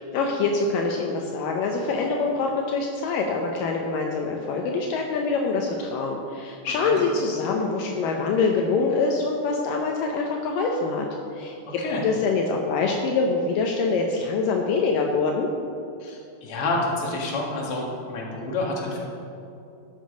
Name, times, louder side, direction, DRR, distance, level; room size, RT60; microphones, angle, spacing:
voice 1, 0.1-11.1 11.3-15.5, left 4 dB, 85° left, 1 dB, 1.9 m, -25 dB
voice 2, 6.7-7.0 11.7-12.0 16.0-19.0, left 2 dB, 45° left, -3 dB, 2.0 m, -29 dB
12.5 x 7.4 x 5.1 m, 2.6 s
omnidirectional pair, 4.8 m